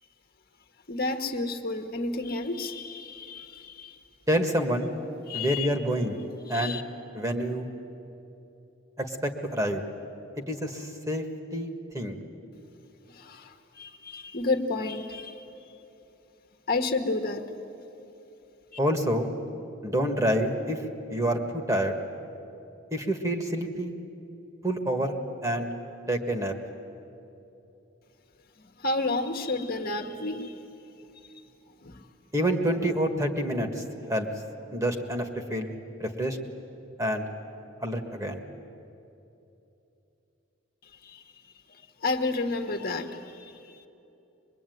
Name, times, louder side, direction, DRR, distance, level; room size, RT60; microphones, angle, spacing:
voice 1, 0.9-4.0 5.3-5.7 6.5-6.8 13.1-15.5 16.7-17.4 28.8-30.6 31.8-32.1 41.0-41.2 42.0-43.9, left 3 dB, 50° left, 4 dB, 1.5 m, -31 dB
voice 2, 4.3-4.9 5.3-6.2 6.5-6.8 7.1-7.7 9.0-9.8 10.5-11.2 11.5-12.2 18.8-19.3 19.8-20.8 21.1-22.0 22.9-23.9 24.6-25.1 25.4-25.7 26.1-26.5 32.3-33.7 34.1-34.3 34.7-35.7 36.0-36.4 37.0-37.2 37.8-38.4, equal, 15° right, 4 dB, 1.7 m, -27 dB
24.0 x 22.5 x 9.4 m, 2.9 s
head